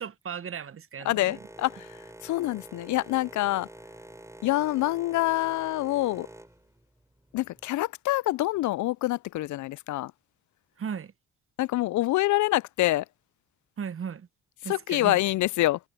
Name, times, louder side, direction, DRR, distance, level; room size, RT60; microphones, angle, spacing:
voice 1, 0.0-1.4 10.8-11.1 13.8-14.3 14.6-15.2, right 7 dB, 40° right, 1.0 m, -36 dB
voice 2, 1.1-1.9 2.2-3.7 4.4-6.3 7.3-10.1 11.6-13.0 14.7-15.8, left 16 dB, 65° left, 0.5 m, -26 dB
Boat Water vehicle, 1.3-7.7, right 1 dB, 10° right, 4.7 m, -48 dB
supercardioid pair, 55°, 32 cm